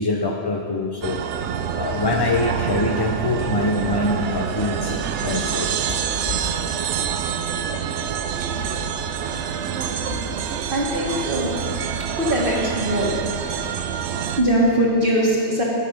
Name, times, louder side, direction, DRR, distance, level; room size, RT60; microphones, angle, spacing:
voice 1, 0.0-1.4 1.7-5.0 5.2-6.2 10.1-10.2, left 2 dB, 40° left, 1 dB, 0.3 m, -24 dB
sound 1, 1.0-14.4, right 7 dB, 85° right, 0.9 m, -26 dB
voice 2, 10.7-11.5 12.1-13.1 14.3-15.6, right 1 dB, 50° right, -4 dB, 1.8 m, -21 dB
9.8 x 8.6 x 5.2 m, 2.3 s
omnidirectional pair, 1.2 m